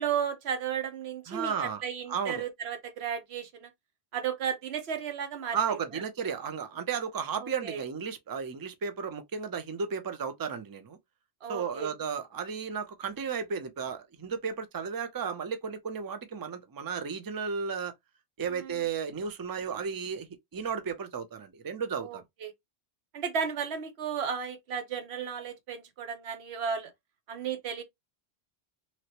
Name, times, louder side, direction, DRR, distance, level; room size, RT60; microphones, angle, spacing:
voice 1, 0.0-3.7 4.1-6.0 7.4-7.8 11.4-11.9 18.5-18.8 22.0-22.5 23.1-26.9 27.3-27.8, right 7 dB, 80° right, 1.0 m, -34 dB
voice 2, 1.3-1.8 2.1-2.4 5.5-11.0 11.5-17.9 18.4-22.2, right 6 dB, 35° right, 0.3 m, -34 dB
3.0 x 2.9 x 2.8 m
omnidirectional pair, 1.1 m